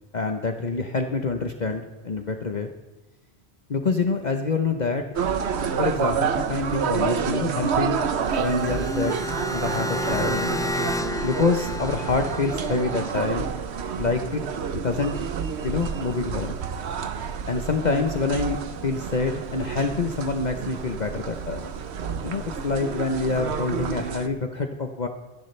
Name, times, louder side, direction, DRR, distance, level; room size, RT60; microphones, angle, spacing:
voice 1, 0.1-2.7 3.7-5.0 5.8-8.0 8.4-9.2 9.5-10.6 11.2-13.5 14.0-14.4 14.7-15.1 15.6-16.6 17.5-21.6 22.2-25.1, left 4 dB, 45° left, 5 dB, 1.0 m, -26 dB
sound 1, 5.2-24.3, right 6 dB, 75° right, 1.1 m, -29 dB
sound 2, 8.1-13.1, left 1 dB, 5° left, 0.5 m, -31 dB
27.0 x 11.0 x 3.3 m, 1.2 s
omnidirectional pair, 1.1 m